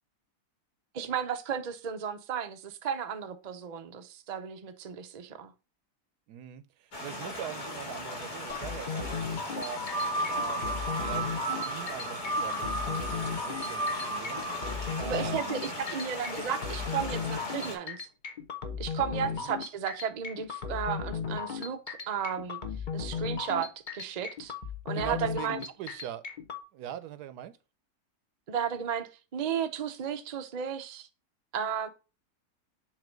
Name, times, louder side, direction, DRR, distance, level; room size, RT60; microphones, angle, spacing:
voice 1, 0.9-5.5 15.0-18.1 18.8-22.6 22.9-24.5 24.8-25.6 28.5-31.1 31.5-31.9, right 7 dB, 55° right, 0.4 m, -34 dB
voice 2, 6.3-9.8 10.3-14.4 15.0-15.6 19.1-19.5 24.9-26.2 26.7-27.6, right 11 dB, 85° right, 1.2 m, -42 dB
sound 1, 6.9-17.8, left 1 dB, 75° left, 2.2 m, -39 dB
sound 2, 8.5-26.6, left 6 dB, 40° left, 0.7 m, -36 dB
sound 3, 9.5-16.3, right 2 dB, 15° left, 1.6 m, -35 dB
7.4 x 2.9 x 5.0 m
omnidirectional pair, 1.6 m